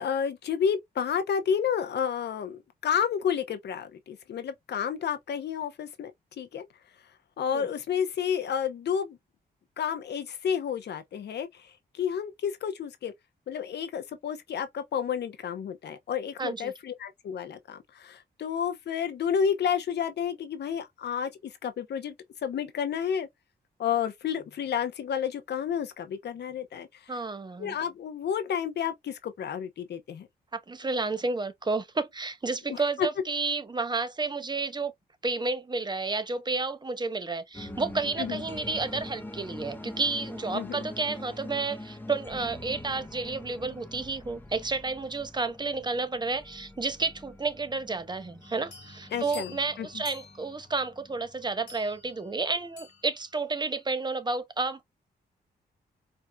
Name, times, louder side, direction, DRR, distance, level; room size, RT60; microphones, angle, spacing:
voice 1, 0.0-6.1 6.4-6.7 7.4-9.2 9.8-11.5 11.9-13.1 13.5-22.1 22.4-23.3 23.8-26.9 27.6-30.3 32.7-33.1 38.2-38.4 40.5-40.8 49.1-49.5 49.8-49.9, left 7 dB, 75° left, 0.7 m, -30 dB
voice 2, 16.4-16.7 27.1-27.7 30.5-34.9 35.2-54.8, right 3 dB, 25° right, 0.7 m, -31 dB
sound 1, 37.5-52.7, left 1 dB, 10° left, 0.8 m, -44 dB
sound 2, 48.4-53.5, left 5 dB, 90° left, 1.4 m, -50 dB
4.5 x 2.6 x 2.2 m
cardioid pair, 75°, 17 cm